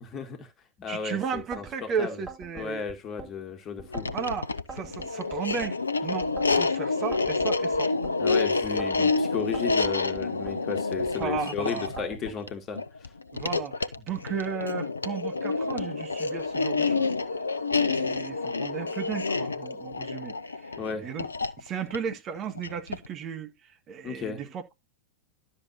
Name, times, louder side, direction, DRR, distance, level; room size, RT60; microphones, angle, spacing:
voice 1, 0.1-0.5 0.8-2.2 2.5-4.1 8.2-13.1 20.8-21.1 24.0-24.4, left 6 dB, 30° left, 2.0 m, -34 dB
voice 2, 0.9-2.8 4.1-7.9 11.2-11.9 13.3-17.1 17.8-20.7 21.0-21.3 21.6-23.5 23.9-24.7, right 7 dB, 30° right, 1.8 m, -34 dB
sound 1, 1.4-1.8 2.3-3.3 3.8-4.2 4.7-5.7 6.2-6.6 7.1-8.2 8.6-9.1 9.5-10.6 11.1-11.5 12.0-12.4, right 4 dB, 15° right, 3.8 m, -44 dB
sound 2, 3.9-23.1, left 3 dB, 80° left, 0.6 m, -28 dB
12.0 x 6.8 x 2.9 m
figure-of-eight pair, 90°, 0 cm